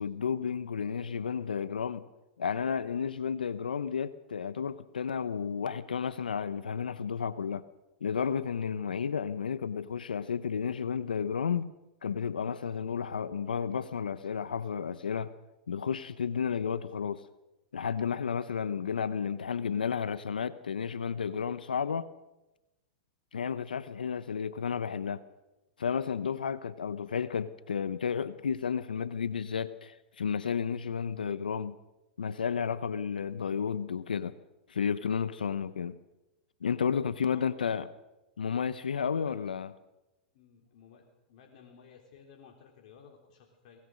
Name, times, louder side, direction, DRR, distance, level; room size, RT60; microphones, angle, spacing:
voice 1, 0.0-2.0 2.4-7.6 8.0-11.7 12.0-15.3 15.7-17.2 17.7-22.1 23.3-25.2 25.8-31.7 32.2-34.3 34.7-36.0 36.6-37.9 38.4-39.7, left 6 dB, 85° left, 0.9 m, -32 dB
voice 2, 37.0-37.9 39.3-39.4 40.3-43.8, left 6 dB, 60° left, 3.6 m, -56 dB
23.5 x 19.5 x 6.4 m
hypercardioid pair, 105°, 5 cm